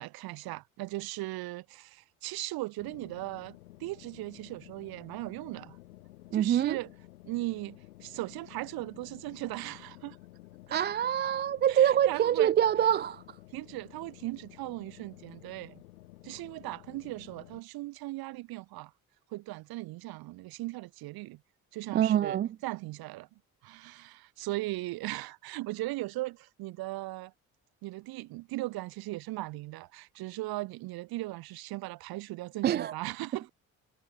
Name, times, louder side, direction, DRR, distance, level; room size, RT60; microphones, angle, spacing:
voice 1, 0.0-5.8 6.3-6.9 7.3-10.2 10.7-10.9 11.7-12.5 13.5-15.8 16.2-18.9 19.3-21.4 21.7-23.3 23.6-27.3 27.8-33.5, right 19 dB, 55° right, 0.9 m, -38 dB
sound 1, 2.8-17.6, left 16 dB, 80° left, 2.0 m, -53 dB
voice 2, 6.3-6.8 10.7-13.2 21.9-22.5 32.6-32.9, right 10 dB, 25° right, 0.3 m, -25 dB
figure-of-eight pair, 50°, 43 cm